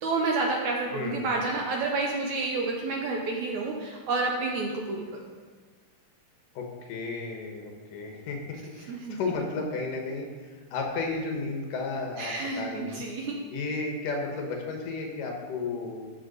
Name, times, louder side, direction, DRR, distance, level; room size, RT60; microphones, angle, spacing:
voice 1, 0.0-5.0 8.9-9.2 12.2-13.4, right 3 dB, 75° right, 0 dB, 1.8 m, -29 dB
voice 2, 0.9-1.2 6.6-13.0 13.5-16.1, left 3 dB, 70° left, 1 dB, 2.6 m, -33 dB
13.0 x 6.8 x 4.0 m, 1.4 s
omnidirectional pair, 4.2 m